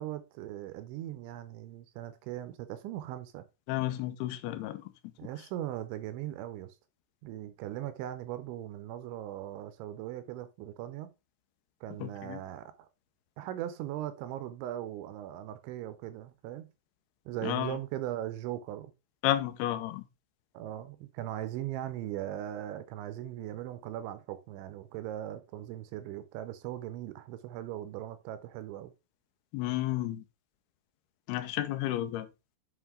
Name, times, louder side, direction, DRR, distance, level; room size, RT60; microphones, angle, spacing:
voice 1, 0.0-3.4 5.2-6.7 7.2-11.1 11.8-12.9 13.4-16.7 17.3-18.9 20.5-28.9, right 12 dB, 80° right, 3.0 m, -39 dB
voice 2, 3.7-4.8 12.0-12.4 17.4-17.8 19.2-20.0 29.5-30.2 31.3-32.3, left 14 dB, 80° left, 2.4 m, -32 dB
8.0 x 5.1 x 3.6 m
omnidirectional pair, 5.5 m